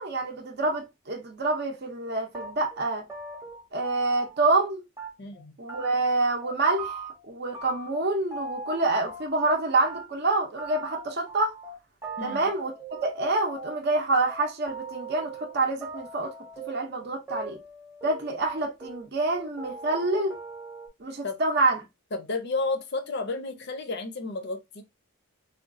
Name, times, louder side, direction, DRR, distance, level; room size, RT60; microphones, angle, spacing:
voice 1, 0.0-3.0 3.7-4.8 5.6-11.5 12.2-12.7 13.0-16.3 16.7-17.6 18.0-20.3 21.0-21.8, right 2 dB, 45° right, 0.6 m, -27 dB
sound 1, 2.3-4.7 5.0-5.4 5.7-6.1 6.4-7.3 7.5-9.6 9.8-20.9, right 3 dB, 10° right, 0.8 m, -41 dB
voice 2, 5.2-5.6 12.2-12.5 21.2-21.4 22.1-24.8, left 3 dB, 50° left, 0.6 m, -32 dB
3.7 x 2.3 x 2.5 m
head